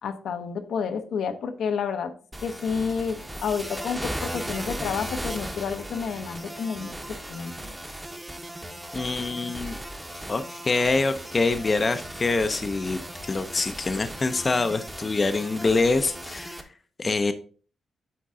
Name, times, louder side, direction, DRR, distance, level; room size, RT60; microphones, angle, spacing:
voice 1, 0.0-2.1 2.4-7.0 7.3-7.7, left 6 dB, 80° left, 7 dB, 0.8 m, -30 dB
sound 1, 2.3-16.6, right 1 dB, 5° right, 0.8 m, -37 dB
voice 2, 8.9-9.8 10.3-16.6 17.0-17.3, left 3 dB, 25° left, 9 dB, 0.5 m, -25 dB
8.7 x 3.7 x 3.6 m, 0.40 s
wide cardioid pair, 135°, 0 cm